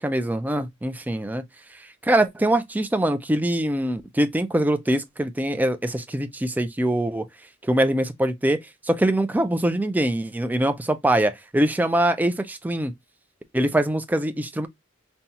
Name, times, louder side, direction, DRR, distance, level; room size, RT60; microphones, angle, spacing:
voice 1, 0.0-1.4 2.0-7.3 7.6-8.6 8.8-12.9 13.5-14.7, right 1 dB, 10° right, 0.4 m, -23 dB
5.3 x 2.3 x 2.8 m
head